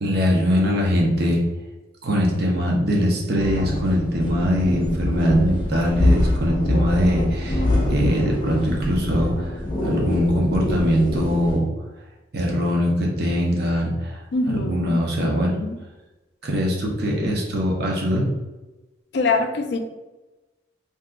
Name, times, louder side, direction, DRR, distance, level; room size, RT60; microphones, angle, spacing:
voice 1, 0.0-1.4 2.0-9.5 9.8-11.7 12.3-15.5 16.4-18.3, equal, 55° right, -2 dB, 0.6 m, -22 dB
sound 1, 3.3-11.6, left 1 dB, 25° left, 0.7 m, -24 dB
voice 2, 14.3-15.8 19.1-19.8, left 3 dB, 60° left, 6 dB, 0.4 m, -25 dB
2.7 x 2.3 x 3.5 m, 1.1 s
head